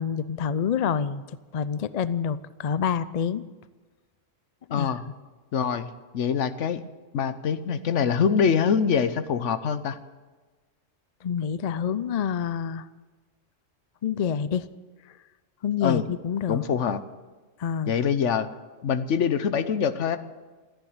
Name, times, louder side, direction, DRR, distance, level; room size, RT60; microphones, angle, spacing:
voice 1, 0.0-3.4 4.7-4.9 11.2-12.9 14.0-14.7 15.6-16.6 17.6-17.9, left 7 dB, 50° left, 16 dB, 0.4 m, -27 dB
voice 2, 4.7-5.0 5.5-6.8 7.1-10.0 15.8-16.0 16.5-17.0 17.9-18.5 18.8-20.2, left 7 dB, 70° left, 12 dB, 1.1 m, -24 dB
14.5 x 10.0 x 9.5 m, 1.3 s
omnidirectional pair, 1.3 m